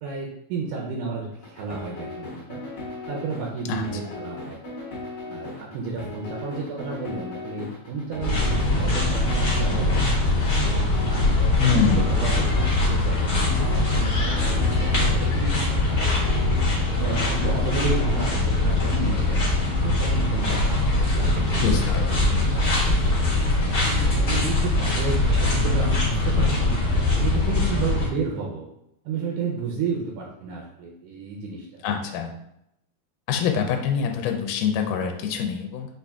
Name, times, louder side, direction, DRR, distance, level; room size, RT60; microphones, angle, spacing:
voice 1, 0.0-2.6 3.1-4.6 5.3-10.6 11.1-13.2 13.4-16.1 16.9-19.4 19.8-23.0 23.8-26.8 27.1-28.6 29.1-31.8, right 4 dB, 80° right, -2 dB, 2.0 m, -32 dB
sound 1, 1.3-18.4, left 2 dB, 60° left, 1.4 m, -37 dB
sound 2, 8.2-28.1, left 2 dB, 40° left, 1.3 m, -22 dB
voice 2, 11.6-12.0 21.6-22.4 31.8-32.3 33.3-35.9, left 7 dB, 80° left, 3 dB, 2.0 m, -25 dB
5.4 x 2.5 x 3.4 m, 0.79 s
omnidirectional pair, 3.7 m